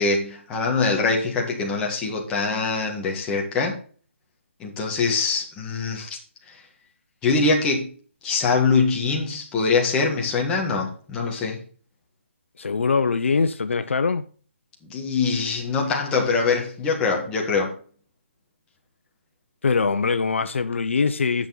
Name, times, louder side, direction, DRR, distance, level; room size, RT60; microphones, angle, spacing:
voice 1, 0.0-3.8 4.6-6.2 6.5-6.6 7.2-7.9 8.2-11.6 14.9-17.7, left 4 dB, 10° left, 1.7 m, -23 dB
voice 2, 12.6-14.2 19.6-21.5, left 4 dB, 70° left, 1.0 m, -22 dB
10.0 x 6.4 x 4.1 m
hypercardioid pair, 165°, 7 cm